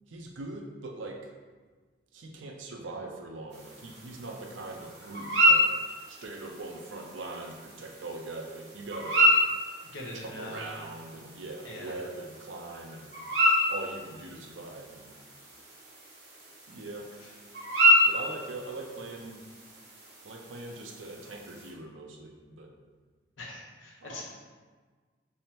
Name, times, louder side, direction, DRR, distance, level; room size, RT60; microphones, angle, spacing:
voice 1, 0.1-1.2 2.1-5.6 6.1-9.2 10.1-13.1 13.7-15.2 16.7-17.1 18.1-19.4 20.2-22.7 24.0-24.2, right 2 dB, 85° right, 2 dB, 0.5 m, -41 dB
sound 1, 3.5-21.7, equal, 60° right, 0.9 m, -29 dB
voice 2, 9.9-10.6 11.6-11.9 23.4-24.2, left 1 dB, 90° left, -1 dB, 0.7 m, -42 dB
3.4 x 3.1 x 2.9 m, 1.4 s
head